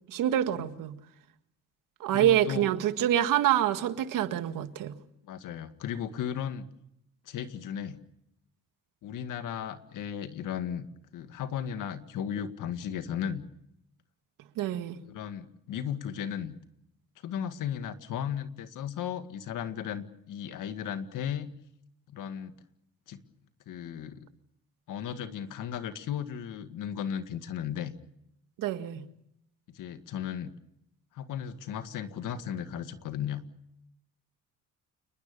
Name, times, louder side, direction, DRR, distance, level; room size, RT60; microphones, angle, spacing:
voice 1, 0.1-1.0 2.0-4.9 14.6-15.0 28.6-29.0, right 11 dB, 80° right, 1.8 m, -26 dB
voice 2, 2.1-2.7 5.2-6.7 7.3-8.0 9.0-10.9 11.1-13.4 15.0-16.6 17.2-21.5 22.1-22.5 23.1-23.2 23.7-24.3 24.9-27.9 29.7-30.5 31.1-33.5, left 9 dB, 75° left, 2.0 m, -35 dB
29.0 x 20.5 x 6.9 m
cardioid pair, 110°, 32 cm